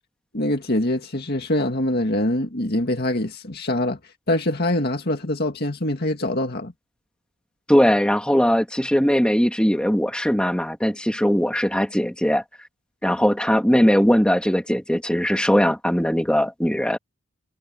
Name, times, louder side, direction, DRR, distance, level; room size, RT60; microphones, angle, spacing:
voice 1, 0.3-4.0 4.3-6.7, left 1 dB, 45° left, 2.1 m, -24 dB
voice 2, 7.7-12.4 13.0-17.0, equal, 5° left, 2.0 m, -20 dB
head